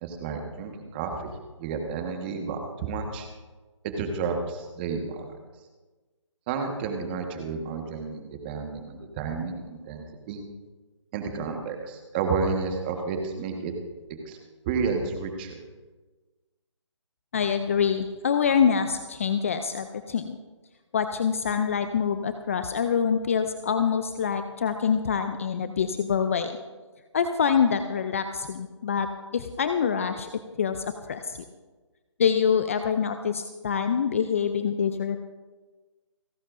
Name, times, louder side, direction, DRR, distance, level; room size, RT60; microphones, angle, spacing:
voice 1, 0.0-1.3 1.6-3.3 3.8-5.3 6.5-10.4 11.1-13.7 14.2-14.4 14.6-15.6, right 5 dB, 20° right, 4 dB, 1.4 m, -31 dB
voice 2, 17.3-20.4 20.9-26.5 27.1-30.3 30.6-31.4 32.2-35.2, left 7 dB, 25° left, 9 dB, 0.5 m, -25 dB
29.0 x 11.5 x 2.6 m, 1.3 s
figure-of-eight pair, 155°, 16 cm